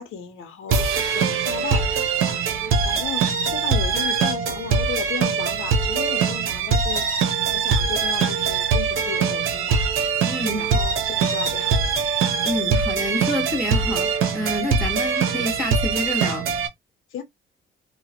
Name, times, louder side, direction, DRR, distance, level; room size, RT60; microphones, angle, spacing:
voice 1, 0.0-10.0 10.6-12.1 17.1-17.2, left 8 dB, 70° left, 0.8 m, -35 dB
sound 1, 0.7-16.7, right 5 dB, 80° right, 0.8 m, -22 dB
voice 2, 10.3-10.7 12.4-16.4, left 1 dB, ahead, 1.5 m, -28 dB
2.9 x 2.2 x 2.8 m
cardioid pair, 145°, 21 cm